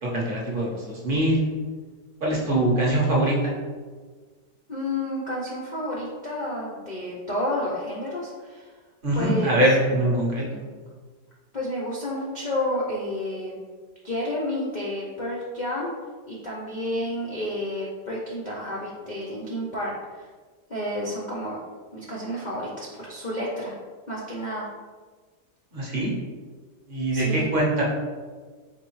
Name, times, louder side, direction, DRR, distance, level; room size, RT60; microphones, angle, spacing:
voice 1, 0.0-1.5 2.2-3.5 9.0-10.6 25.7-26.1 26.9-27.8, right 1 dB, 40° right, -4 dB, 0.8 m, -23 dB
voice 2, 4.7-8.7 9.1-9.5 11.5-13.6 14.0-15.9 16.3-20.3 20.7-21.6 21.9-23.7 24.1-24.7 27.1-27.5, left 1 dB, 80° left, -5 dB, 0.4 m, -30 dB
4.1 x 3.6 x 3.1 m, 1.5 s
omnidirectional pair, 1.8 m